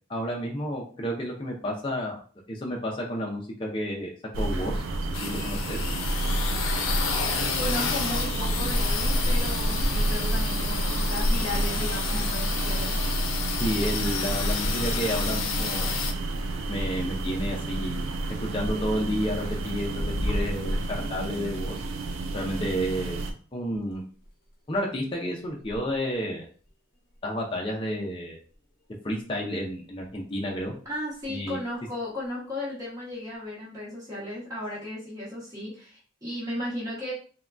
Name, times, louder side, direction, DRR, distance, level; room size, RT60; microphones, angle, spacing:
voice 1, 0.1-2.2 2.5-4.1 4.4-4.8 5.2-5.8 13.6-15.9 16.7-18.1 18.5-21.8 22.3-23.2 23.5-24.0 24.7-26.5 27.2-28.4 29.0-30.7 31.3-31.6, equal, 25° left, -2 dB, 0.4 m, -31 dB
sound 1, 4.3-23.3, right 1 dB, 80° right, 0.4 m, -29 dB
sound 2, 5.1-16.1, left 5 dB, 85° left, 0.5 m, -31 dB
voice 2, 7.6-13.0 30.8-37.1, left 1 dB, 15° right, -7 dB, 1.0 m, -35 dB
sound 3, 19.5-20.9 21.2-28.3 28.5-29.3 30.0-31.8 32.2-32.6 33.3-33.4, equal, 45° left, 0.8 m, -40 dB
3.4 x 2.2 x 2.4 m, 0.41 s
head